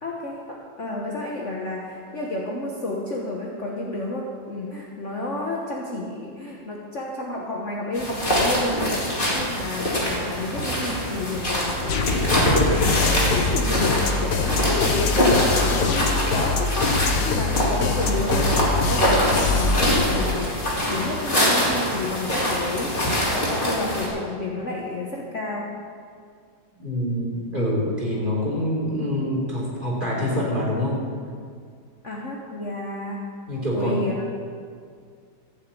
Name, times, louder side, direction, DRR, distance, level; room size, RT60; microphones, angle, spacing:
voice 1, 0.0-12.1 13.1-15.4 15.7-16.9 17.2-25.7 32.0-33.2 33.7-34.3, left 2 dB, 45° left, -2 dB, 1.4 m, -31 dB
sound 1, 7.9-24.1, equal, 25° left, 3.2 m, -24 dB
sound 2, 11.9-20.3, left 4 dB, 65° left, 1.6 m, -24 dB
voice 2, 26.8-31.0 33.5-34.0, equal, 25° right, -5 dB, 3.8 m, -25 dB
15.0 x 6.0 x 8.4 m, 2.1 s
omnidirectional pair, 2.0 m